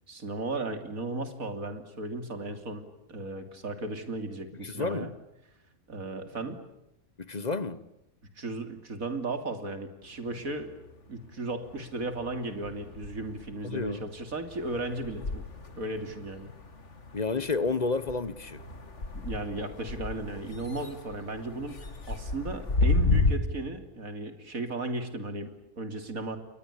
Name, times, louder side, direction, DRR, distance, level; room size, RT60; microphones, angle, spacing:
voice 1, 0.1-5.1 5.9-6.6 8.4-10.7 11.1-15.5 15.8-16.5 19.1-21.8 22.1-26.4, right 2 dB, 80° right, 3.4 m, -35 dB
voice 2, 4.6-5.1 7.2-7.9 13.6-14.1 17.1-18.6, left 4 dB, 30° left, 1.1 m, -30 dB
sound 1, 10.1-11.3 11.6-23.3, left 3 dB, 55° left, 2.6 m, -33 dB
29.5 x 22.5 x 8.4 m
omnidirectional pair, 1.5 m